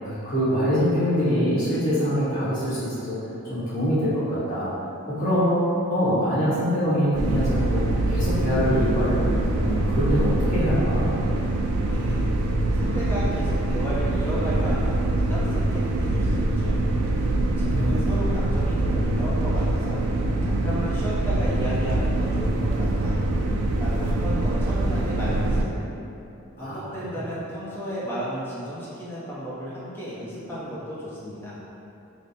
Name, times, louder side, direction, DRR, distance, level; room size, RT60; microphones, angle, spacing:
voice 1, 0.0-3.2 3.4-4.7 5.1-5.6 5.9-7.8 8.1-9.3 9.6-11.1 17.7-18.1 26.6-26.8 27.1-27.2, equal, 40° left, -12 dB, 1.3 m, -24 dB
sound 1, 7.1-25.6, right 1 dB, 85° right, 0.4 m, -24 dB
voice 2, 11.9-12.2 12.7-16.8 17.6-20.0 20.4-23.2 23.8-25.8 26.6-31.6, equal, 10° left, -9 dB, 0.7 m, -33 dB
3.4 x 2.1 x 4.1 m, 2.8 s
head